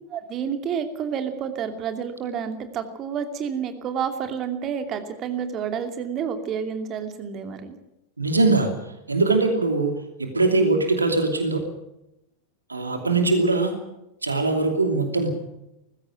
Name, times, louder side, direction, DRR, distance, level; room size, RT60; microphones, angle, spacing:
voice 1, 0.1-7.8, right 7 dB, 30° right, 8 dB, 2.6 m, -29 dB
voice 2, 8.2-11.6 12.7-13.8 14.2-15.3, right 3 dB, 80° right, 5 dB, 2.8 m, -22 dB
20.0 x 15.5 x 9.1 m, 0.88 s
figure-of-eight pair, 90°, 0 cm